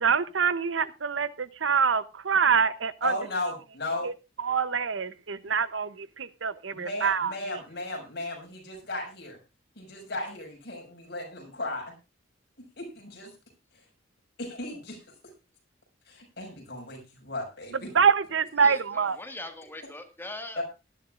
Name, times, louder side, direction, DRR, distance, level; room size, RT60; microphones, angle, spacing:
voice 1, 0.0-3.1 4.0-4.1 4.4-7.6 17.7-19.2, right 6 dB, 80° right, 15 dB, 0.8 m, -25 dB
voice 2, 3.0-4.1 6.7-9.4 9.8-11.9 12.8-13.3 14.4-15.0 16.1-17.9 20.6-20.7, left 2 dB, 60° left, 1 dB, 6.1 m, -35 dB
voice 3, 18.6-20.6, left 2 dB, 10° left, 5 dB, 1.8 m, -41 dB
19.0 x 11.5 x 2.5 m, 0.29 s
head